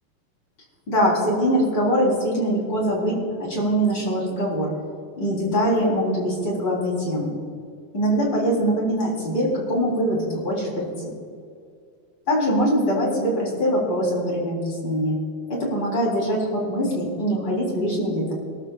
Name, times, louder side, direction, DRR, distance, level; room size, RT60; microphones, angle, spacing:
voice 1, 0.9-4.7 5.2-7.3 7.9-11.1 12.3-15.2 15.5-18.3, equal, 25° left, -4 dB, 3.8 m, -23 dB
25.5 x 13.0 x 2.5 m, 2.2 s
omnidirectional pair, 5.4 m